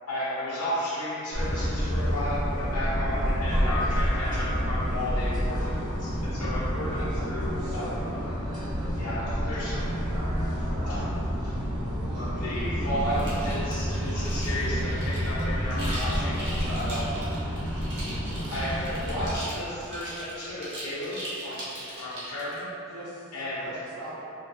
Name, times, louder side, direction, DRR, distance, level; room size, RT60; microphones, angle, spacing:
voice 1, 0.0-8.0 8.9-10.1 10.8-11.2 11.4-11.5 12.4-17.1 18.5-21.6 22.0-22.7 23.3-23.7, left 1 dB, 90° left, -8 dB, 0.7 m, -33 dB
sound 1, 1.3-19.4, equal, 20° right, 0.5 m, -29 dB
voice 2, 6.8-7.1 7.6-8.3 14.6-14.8 16.4-17.3 22.9-23.3 23.6-24.2, equal, 80° right, -10 dB, 0.5 m, -42 dB
sound 2, 13.1-22.6, right 1 dB, 50° right, 0.8 m, -40 dB
2.3 x 2.3 x 2.6 m, 2.7 s
head